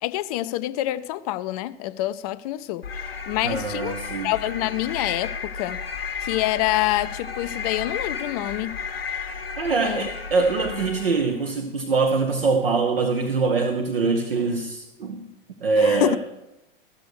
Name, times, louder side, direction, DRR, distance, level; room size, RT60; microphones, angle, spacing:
voice 1, 0.0-2.9 3.3-3.9 4.2-5.8 6.2-8.8 9.8-10.1 15.8-16.2, left 15 dB, 40° left, 0.4 m, -26 dB
sound 1, 2.8-11.4, left 5 dB, 75° left, 1.1 m, -33 dB
voice 2, 3.4-4.3 9.6-15.3 15.6-16.2, right 4 dB, 75° right, 1.0 m, -23 dB
14.0 x 6.9 x 6.3 m
figure-of-eight pair, 90°, 29 cm